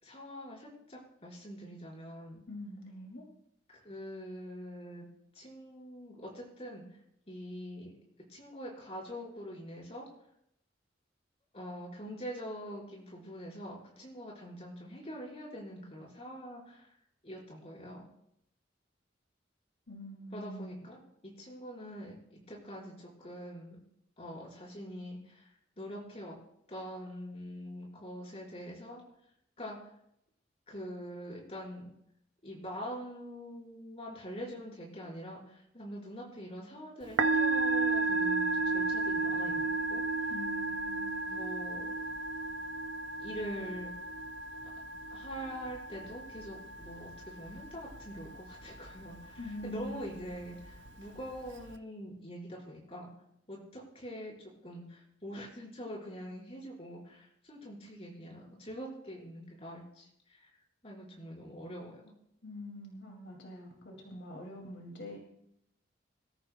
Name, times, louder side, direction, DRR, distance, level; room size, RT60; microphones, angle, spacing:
voice 1, 0.0-2.4 3.7-5.1 5.3-6.8 7.3-7.9 8.3-10.1 11.5-16.9 17.2-18.0 20.3-23.8 24.2-26.4 26.7-29.0 29.6-29.9 30.7-31.9 32.4-40.3 41.3-41.9 43.2-43.9 45.1-53.1 53.5-60.5 60.8-62.1, equal, 35° left, -3 dB, 4.9 m, -44 dB
voice 2, 2.5-3.2 19.9-20.8 40.3-41.4 49.4-50.1 62.4-65.2, left 1 dB, 75° left, 0 dB, 2.5 m, -44 dB
Musical instrument, 37.0-51.7, right 3 dB, 85° right, 0.9 m, -34 dB
25.0 x 14.0 x 2.3 m, 0.76 s
head